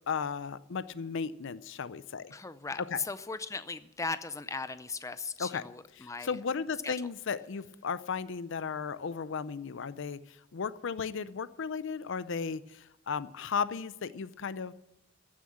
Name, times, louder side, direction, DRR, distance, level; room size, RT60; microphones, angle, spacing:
voice 1, 0.1-2.3 2.9-3.0 5.4-5.6 6.0-10.2 10.5-12.6 13.1-14.7, left 6 dB, 65° left, 15 dB, 0.5 m, -35 dB
voice 2, 2.3-6.4 6.8-6.9, left 4 dB, 15° left, 13 dB, 0.5 m, -38 dB
15.0 x 7.5 x 8.7 m, 0.86 s
head